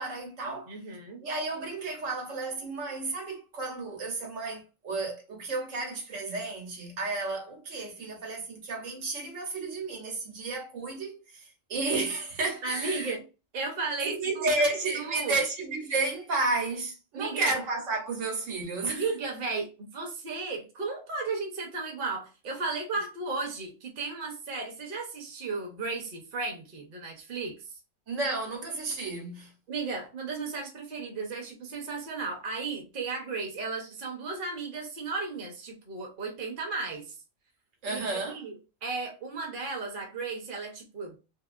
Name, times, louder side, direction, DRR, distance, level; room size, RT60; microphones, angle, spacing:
voice 1, 0.0-0.7 1.2-13.2 14.0-19.1 28.1-29.5 37.8-38.4, right 3 dB, 70° right, 1.3 m, -32 dB
voice 2, 0.7-1.2 12.6-13.2 13.5-14.5 14.9-15.4 17.1-17.5 18.9-27.7 29.7-37.2 37.9-38.5 38.8-41.2, right 3 dB, 45° right, 0.9 m, -35 dB
2.8 x 2.7 x 2.4 m
omnidirectional pair, 1.4 m